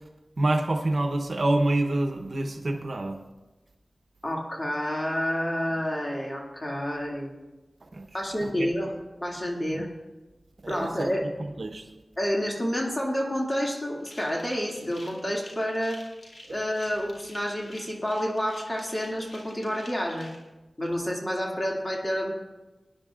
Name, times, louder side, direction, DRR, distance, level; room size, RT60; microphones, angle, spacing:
voice 1, 0.4-3.2 7.9-8.1 8.4-8.7 9.7-9.9 10.6-11.1 11.4-11.8, right 2 dB, 65° right, 5 dB, 1.0 m, -27 dB
voice 2, 4.2-7.3 8.1-8.9 9.2-9.9 10.7-11.3 12.2-16.0 16.5-20.3 20.8-22.3, equal, 30° left, -1 dB, 2.4 m, -29 dB
sound 1, 14.0-20.4, left 1 dB, 80° left, 2.5 m, -49 dB
20.5 x 10.5 x 2.5 m, 1.1 s
wide cardioid pair, 55°, 0 cm